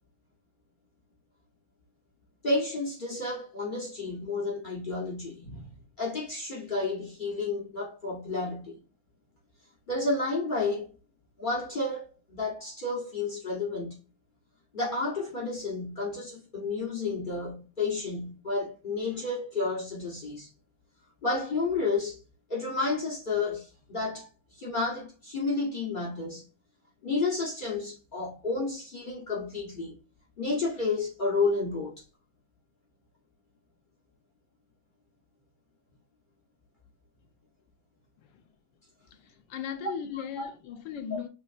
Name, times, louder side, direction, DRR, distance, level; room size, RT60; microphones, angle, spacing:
voice 1, 2.4-8.8 9.9-10.9 11.4-14.0 14.7-20.5 21.2-22.2 22.5-26.5 27.0-30.0 30.4-31.9 40.4-40.5, left 3 dB, 45° left, 0.6 m, -31 dB
voice 2, 39.1-41.3, left 8 dB, 75° left, 1.3 m, -38 dB
6.2 x 3.1 x 2.4 m
omnidirectional pair, 2.1 m